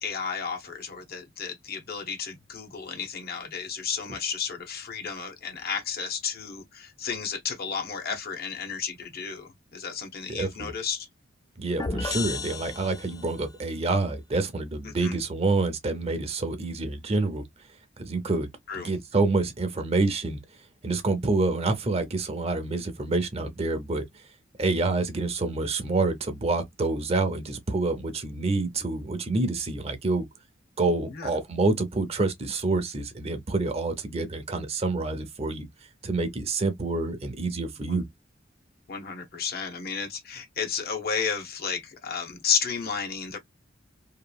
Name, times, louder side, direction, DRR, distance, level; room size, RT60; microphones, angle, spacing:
voice 1, 0.0-11.1 14.8-15.2 18.7-18.9 31.0-31.3 37.9-38.0 38.9-43.4, left 6 dB, 55° left, 0.7 m, -32 dB
voice 2, 10.3-10.7 11.6-17.4 18.0-18.5 18.7-20.4 20.8-24.0 24.6-30.2 30.8-35.7 36.0-38.1, right 3 dB, 35° right, 0.6 m, -27 dB
sound 1, 11.8-13.5, left 3 dB, 20° left, 0.3 m, -33 dB
2.9 x 2.4 x 2.2 m
head